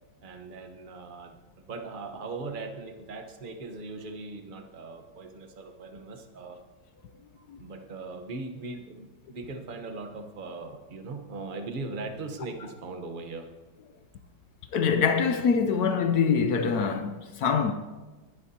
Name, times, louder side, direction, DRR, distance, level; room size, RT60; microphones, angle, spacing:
voice 1, 0.2-1.4 1.7-6.6 7.4-13.5, right 3 dB, 35° right, 0.9 m, -39 dB
voice 2, 14.7-17.7, left 6 dB, 65° left, 1.0 m, -24 dB
21.0 x 11.5 x 2.8 m
omnidirectional pair, 2.2 m